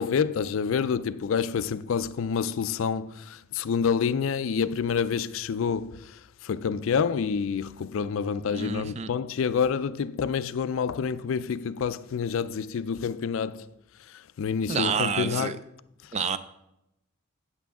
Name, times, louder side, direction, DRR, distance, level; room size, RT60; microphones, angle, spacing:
voice 1, 0.0-13.7 14.1-15.5, left 6 dB, 65° left, 0.4 m, -28 dB
voice 2, 8.5-9.1 14.7-15.6 16.1-16.4, right 6 dB, 30° right, 0.4 m, -28 dB
9.3 x 8.3 x 3.6 m
head